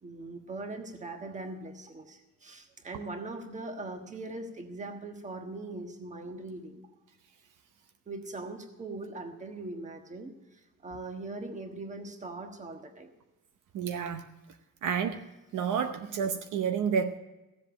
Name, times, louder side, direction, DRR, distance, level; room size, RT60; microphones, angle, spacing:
voice 1, 0.0-6.8 8.1-10.3 10.8-13.1, right 2 dB, 20° right, 5 dB, 1.4 m, -40 dB
voice 2, 13.7-14.3 14.8-15.2 15.5-17.2, right 7 dB, 65° right, 7 dB, 0.9 m, -30 dB
15.5 x 7.8 x 6.1 m, 1.1 s
cardioid pair, 160°, 34 cm